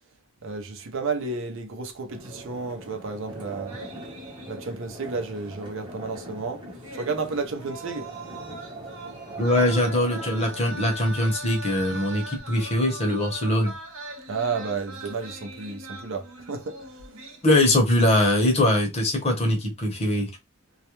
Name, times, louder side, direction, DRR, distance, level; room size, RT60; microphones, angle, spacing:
voice 1, 0.4-3.8 4.5-6.7 6.9-8.1 14.3-17.0, right 4 dB, 65° right, 0.6 m, -32 dB
sound 1, 2.1-10.9, right 1 dB, 20° right, 0.7 m, -42 dB
sound 2, 3.7-5.0 5.3-5.4 6.7-18.2 18.5-18.8, right 2 dB, 80° right, 0.9 m, -41 dB
voice 2, 9.4-13.7 17.4-20.3, left 1 dB, 30° left, 0.8 m, -22 dB
2.3 x 2.1 x 2.9 m
head